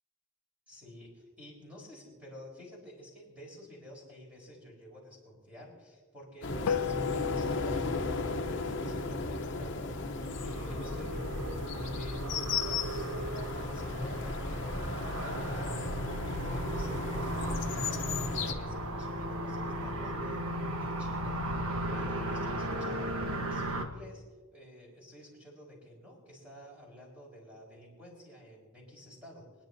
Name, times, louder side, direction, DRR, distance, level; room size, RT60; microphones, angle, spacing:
voice 1, 0.7-21.6 21.9-24.2 24.5-29.7, equal, 5° right, -3 dB, 4.2 m, -51 dB
sound 1, 6.4-18.5, left 3 dB, 55° left, 0.8 m, -35 dB
sound 2, 6.7-11.3, left 9 dB, 85° left, 0.3 m, -37 dB
sound 3, 10.2-23.9, right 1 dB, 80° right, 1.2 m, -36 dB
25.5 x 10.5 x 2.7 m, 1.5 s
head